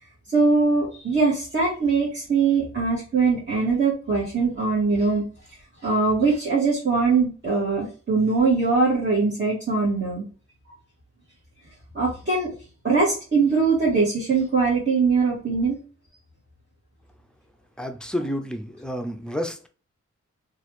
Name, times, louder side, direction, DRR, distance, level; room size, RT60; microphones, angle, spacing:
voice 1, 0.3-5.3 5.8-10.2 10.7-10.8 11.9-12.5 12.8-15.8, right 4 dB, 40° right, -7 dB, 1.5 m, -22 dB
voice 2, 17.8-19.7, equal, 5° left, 5 dB, 0.5 m, -30 dB
3.0 x 2.4 x 3.1 m, 0.37 s
wide cardioid pair, 70°, 29 cm